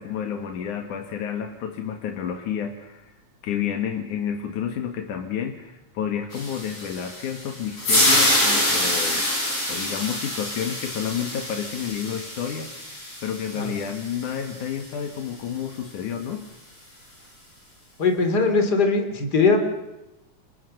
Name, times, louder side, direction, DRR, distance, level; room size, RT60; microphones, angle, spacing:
voice 1, 0.0-3.1 3.4-9.3 9.7-12.9 13.2-16.5, left 8 dB, 90° left, 5 dB, 3.2 m, -30 dB
sound 1, 6.3-14.6, left 1 dB, 50° left, 7.0 m, -26 dB
voice 2, 18.0-19.6, left 4 dB, 30° left, 6 dB, 3.7 m, -20 dB
29.0 x 28.0 x 6.7 m, 0.97 s
omnidirectional pair, 3.4 m